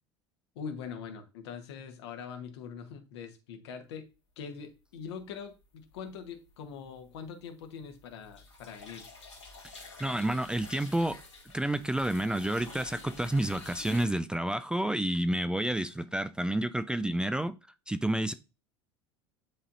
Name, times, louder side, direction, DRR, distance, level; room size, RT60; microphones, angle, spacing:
voice 1, 0.5-4.1 4.4-9.0, left 6 dB, 65° left, 1.3 m, -43 dB
sound 1, 5.9-6.5 6.8-14.0, left 3 dB, 85° left, 2.2 m, -49 dB
voice 2, 9.7-11.2 11.5-17.5 17.9-18.3, right 1 dB, 5° right, 0.4 m, -30 dB
10.0 x 4.0 x 2.5 m
figure-of-eight pair, 75°, 15 cm